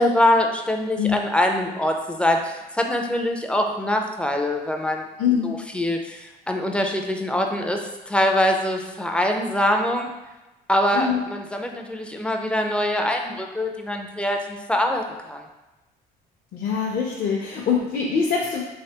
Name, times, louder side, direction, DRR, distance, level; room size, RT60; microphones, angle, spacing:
voice 1, 0.0-5.0 5.4-10.1 10.7-15.4, left 1 dB, 5° left, 3 dB, 0.3 m, -23 dB
voice 2, 5.2-5.6 10.9-11.2 16.5-18.6, left 6 dB, 55° left, -3 dB, 0.5 m, -23 dB
3.2 x 3.2 x 2.8 m, 1.1 s
cardioid pair, 110°, 17 cm